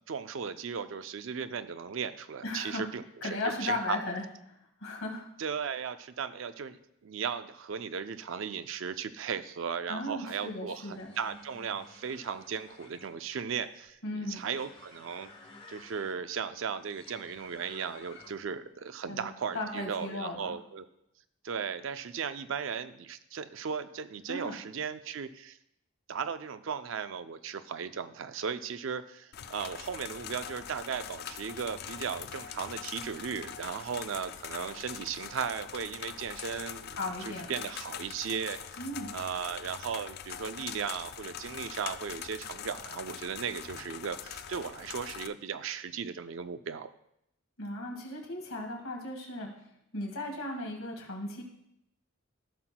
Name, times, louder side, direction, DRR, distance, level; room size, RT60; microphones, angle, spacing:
voice 1, 0.1-4.0 5.4-15.3 15.7-20.9 21.4-25.6 26.1-37.0 37.2-38.8 39.1-46.9, right 6 dB, 65° right, 11 dB, 0.4 m, -36 dB
voice 2, 2.4-2.9 3.2-4.2 4.8-5.3 9.9-11.1 14.0-14.4 19.1-19.3 19.5-20.6 24.3-24.6 36.9-37.5 38.8-39.1 47.6-49.5 49.9-51.4, left 2 dB, 90° left, 1 dB, 1.9 m, -36 dB
sound 1, 10.9-18.6, left 3 dB, 25° left, 0.9 m, -54 dB
sound 2, 29.3-45.3, left 9 dB, 50° left, 0.3 m, -43 dB
15.0 x 5.9 x 2.2 m, 0.80 s
head